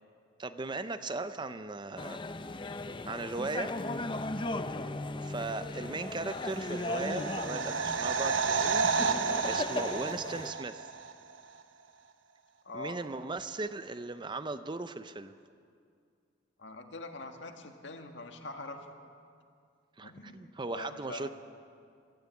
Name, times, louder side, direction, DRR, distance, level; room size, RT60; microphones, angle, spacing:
voice 1, 0.4-2.2 3.0-3.7 5.2-10.9 12.7-15.3 20.0-21.3, right 3 dB, 25° right, 11 dB, 0.6 m, -38 dB
sound 1, 2.0-10.5, left 2 dB, 25° left, 0.7 m, -37 dB
sound 2, 6.2-11.1 11.4-11.5, right 5 dB, 80° right, 1.0 m, -31 dB
voice 2, 12.6-13.0 16.6-18.9 20.0-21.3, left 2 dB, 65° left, 4 dB, 1.9 m, -44 dB
24.0 x 13.5 x 8.4 m, 2.3 s
head